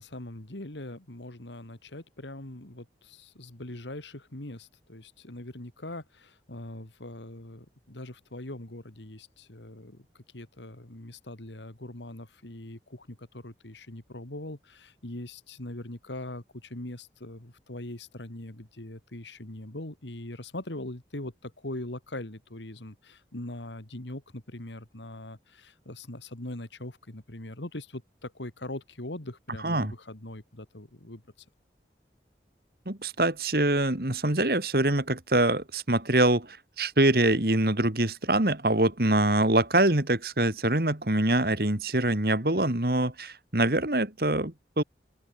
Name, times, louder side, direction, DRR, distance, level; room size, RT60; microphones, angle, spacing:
voice 1, 0.0-10.1 10.3-31.2, left 1 dB, 90° left, 2.7 m, -41 dB
voice 2, 32.9-44.8, right 2 dB, 55° right, 2.3 m, -24 dB
open air
head